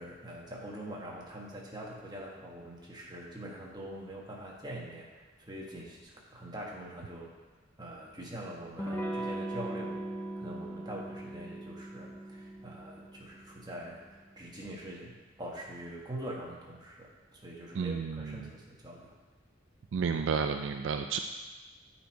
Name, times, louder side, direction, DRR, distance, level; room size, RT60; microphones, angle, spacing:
voice 1, 0.0-7.3 7.8-10.0 10.4-19.1, right 1 dB, 20° right, -3 dB, 1.3 m, -44 dB
Electric guitar / Strum, 8.8-14.2, right 1 dB, 10° left, 0.6 m, -39 dB
voice 2, 17.7-18.5 19.9-21.2, right 6 dB, 65° right, 6 dB, 0.3 m, -31 dB
9.2 x 4.3 x 4.6 m, 1.3 s
head